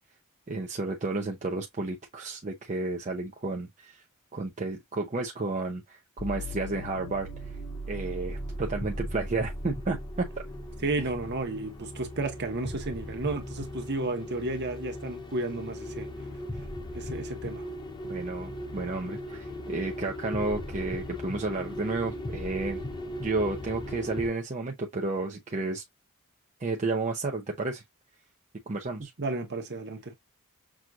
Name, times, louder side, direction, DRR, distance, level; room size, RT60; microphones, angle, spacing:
voice 1, 0.5-4.0 4.3-7.3 7.9-10.3 18.0-22.8 23.2-25.8 26.6-27.8 28.7-29.1, right 3 dB, 35° right, 0.6 m, -32 dB
sound 1, 6.2-24.3, equal, 20° left, 0.5 m, -38 dB
voice 2, 10.8-16.1 16.9-17.6 29.2-30.2, right 2 dB, 50° right, 1.1 m, -32 dB
6.0 x 2.5 x 2.4 m
head